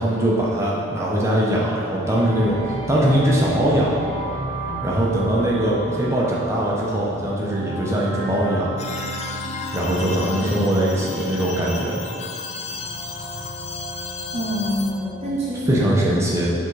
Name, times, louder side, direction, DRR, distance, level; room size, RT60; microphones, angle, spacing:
voice 1, 0.0-2.6 2.9-4.0 4.8-8.7 9.7-12.0 15.7-16.5, right 1 dB, 15° right, -6 dB, 0.9 m, -21 dB
sound 1, 2.0-15.9, right 1 dB, 65° left, 1.3 m, -33 dB
sound 2, 8.8-14.9, left 4 dB, 30° left, 0.4 m, -34 dB
voice 2, 10.2-10.6 10.9-11.3 12.6-12.8 14.3-16.3, equal, 30° right, -7 dB, 1.1 m, -28 dB
7.5 x 3.7 x 4.7 m, 2.5 s
head